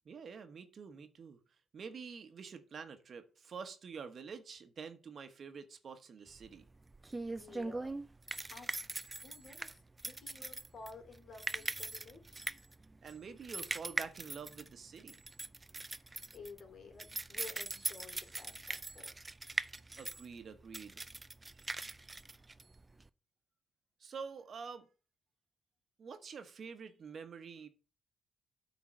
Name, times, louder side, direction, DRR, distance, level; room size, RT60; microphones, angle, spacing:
voice 1, 0.0-1.4 1.7-6.6 13.0-15.2 20.0-21.0 24.0-24.9 26.0-27.7, right 5 dB, 50° right, 9 dB, 1.2 m, -47 dB
sound 1, 6.4-23.1, right 2 dB, 20° right, 0.4 m, -42 dB
voice 2, 7.2-8.0 8.5-8.7 9.1-12.5 15.7-19.1, left 4 dB, 60° left, 4 dB, 2.9 m, -53 dB
8.5 x 3.9 x 6.1 m, 0.34 s
cardioid pair, 90°, 0 cm